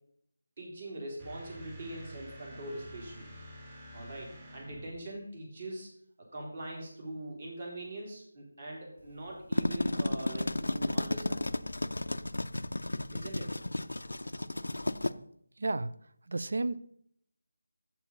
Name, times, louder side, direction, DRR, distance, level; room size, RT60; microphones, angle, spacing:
voice 1, 0.6-3.3 3.9-5.9 6.3-11.5 13.1-13.6, right 1 dB, 45° right, -1 dB, 3.5 m, -42 dB
sound 1, 1.2-5.1, equal, 25° right, 1.7 m, -48 dB
sound 2, 9.3-15.1, left 1 dB, 85° left, 0.5 m, -33 dB
voice 2, 15.6-15.9 16.3-16.8, right 2 dB, 65° right, 14 dB, 0.6 m, -31 dB
7.2 x 7.1 x 5.5 m, 0.68 s
figure-of-eight pair, 165°, 0 cm